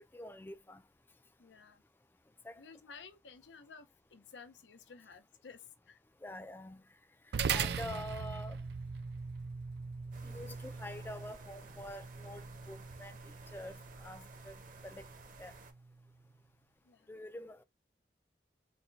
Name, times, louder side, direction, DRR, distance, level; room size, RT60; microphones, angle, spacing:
voice 1, 0.1-0.8 2.4-2.6 6.2-6.8 7.5-8.6 10.2-14.5 14.8-15.1 15.4-15.5 17.1-17.6, left 1 dB, 10° left, 0.3 m, -46 dB
voice 2, 1.4-1.8 2.6-6.0 16.8-17.1, left 5 dB, 90° left, 0.7 m, -54 dB
sound 1, 7.3-16.0, right 6 dB, 70° right, 0.4 m, -41 dB
sound 2, 10.1-15.7, right 3 dB, 45° right, 0.8 m, -55 dB
4.2 x 2.2 x 4.0 m
head